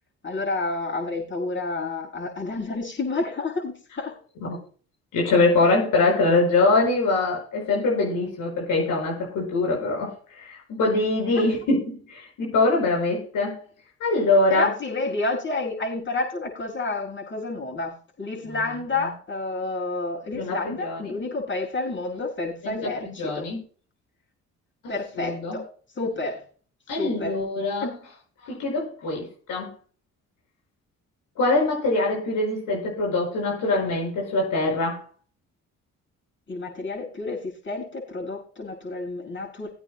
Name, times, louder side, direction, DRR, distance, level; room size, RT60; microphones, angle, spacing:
voice 1, 0.2-4.1 11.4-11.5 14.5-23.5 24.9-25.6 26.0-26.4 27.0-27.4 36.5-37.4 37.6-39.7, left 3 dB, 35° left, -2 dB, 6.7 m, -29 dB
voice 2, 5.1-13.6 14.0-14.7 18.4-18.6 20.3-21.1 22.6-23.6 25.2-25.6 26.9-27.9 28.4-29.7 31.4-35.0, left 2 dB, 75° left, -1 dB, 5.6 m, -23 dB
21.5 x 8.8 x 2.2 m, 0.42 s
supercardioid pair, 70°, 32 cm